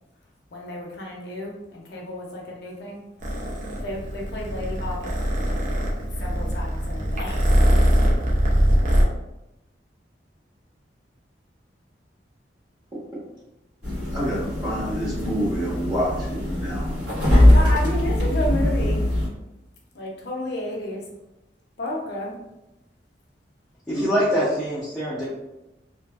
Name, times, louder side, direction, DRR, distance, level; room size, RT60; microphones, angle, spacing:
voice 1, 0.5-3.0 3.8-5.7 6.2-7.4 17.5-19.1 19.9-21.0 21.8-22.4, left 1 dB, 60° left, -2 dB, 0.6 m, -32 dB
Purr, 3.2-9.0, equal, 45° right, 0.5 m, -22 dB
sound 1, 13.8-19.3, left 1 dB, 75° right, 1.3 m, -21 dB
voice 2, 14.1-16.9 23.9-24.1, equal, 25° right, -7 dB, 1.0 m, -27 dB
voice 3, 23.9-25.3, equal, ahead, -10 dB, 0.5 m, -24 dB
2.5 x 2.4 x 2.3 m, 0.94 s
head